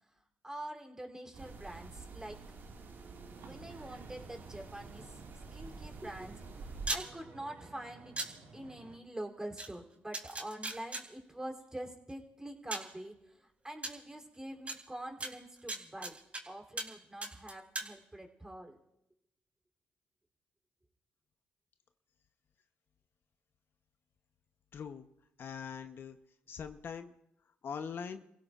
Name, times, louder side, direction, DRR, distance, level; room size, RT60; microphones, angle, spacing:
voice 1, 0.4-2.4 3.4-5.0 5.5-8.1 8.5-13.1 13.6-16.2 16.4-18.8, right 1 dB, 15° right, 3 dB, 3.3 m, -45 dB
sound 1, 1.3-6.9, right 4 dB, 55° right, 2.1 m, -48 dB
sound 2, 3.3-9.0, right 3 dB, 75° right, 3.8 m, -55 dB
sound 3, 6.9-7.0 8.2-8.3 9.6-9.7 10.1-11.0 12.1-12.2 12.7-12.9 13.8-13.9 14.7-14.8 15.2-16.4 16.8-16.9 17.2-17.9, right 2 dB, 30° right, 3.5 m, -37 dB
voice 2, 24.7-25.1 25.4-26.2 26.5-27.1 27.6-28.2, left 6 dB, 55° left, 8 dB, 0.9 m, -42 dB
29.5 x 16.5 x 2.5 m, 0.84 s
supercardioid pair, 60°, 4 cm